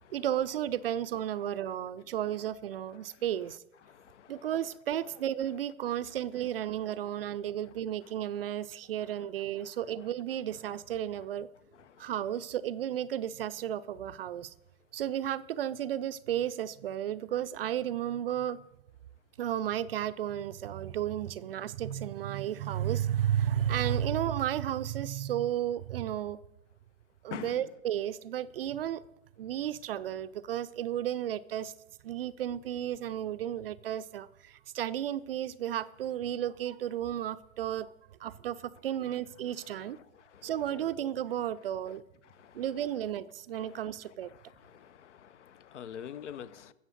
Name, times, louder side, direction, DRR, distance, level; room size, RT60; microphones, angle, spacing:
voice 1, 0.1-3.6 4.3-11.5 12.0-14.5 14.9-18.6 19.4-26.4 27.2-29.0 29.4-31.7 32.0-37.9 38.2-40.0 40.4-42.0 42.5-44.3, right 11 dB, 45° right, 0.5 m, -33 dB
voice 2, 3.9-4.3 11.9-12.0 27.3-27.6 40.3-40.5 42.4-42.6 44.7-46.7, left 9 dB, 60° left, 0.9 m, -45 dB
14.0 x 7.2 x 6.5 m
hypercardioid pair, 135°, 40 cm